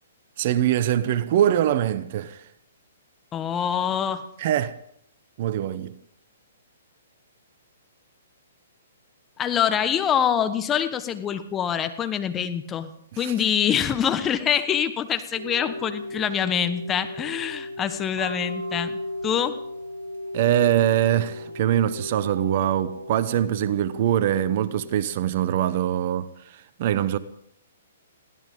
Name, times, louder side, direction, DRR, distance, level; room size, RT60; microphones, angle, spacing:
voice 1, 0.4-2.4 4.4-4.7 5.4-6.0 13.1-13.3 20.3-27.2, right 11 dB, 50° right, 1.0 m, -23 dB
voice 2, 3.3-4.2 9.4-12.9 13.2-19.6, left 8 dB, 20° left, 1.3 m, -25 dB
sound 1, 15.3-25.0, left 1 dB, 70° right, 4.1 m, -36 dB
22.0 x 16.5 x 3.7 m
figure-of-eight pair, 125°, 0 cm